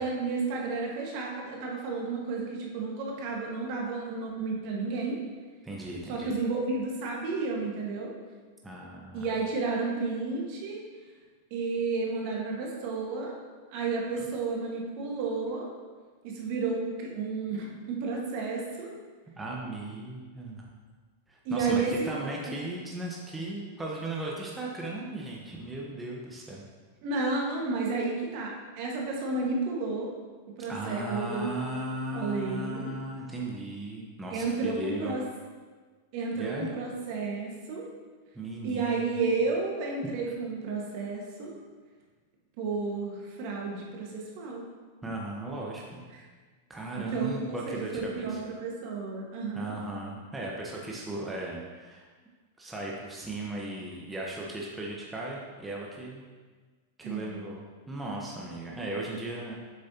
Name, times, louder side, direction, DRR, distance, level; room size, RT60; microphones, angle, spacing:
voice 1, 0.0-5.2 6.0-8.1 9.1-10.8 11.5-13.3 13.7-15.7 16.2-18.9 21.4-22.5 27.0-30.1 30.6-31.5 32.1-32.9 34.3-35.2 36.1-37.9 38.6-41.5 42.6-44.6 46.9-49.7 57.0-57.4, right 4 dB, 55° right, -1 dB, 1.6 m, -32 dB
voice 2, 5.6-6.4 8.6-9.3 14.2-14.3 19.3-20.7 21.3-26.6 30.7-35.1 36.4-36.7 38.3-39.1 45.0-46.0 46.7-48.4 49.5-52.1 52.6-56.2 57.0-59.6, right 2 dB, 10° right, -3 dB, 1.1 m, -37 dB
7.9 x 6.2 x 2.9 m, 1.4 s
hypercardioid pair, 105°, 0 cm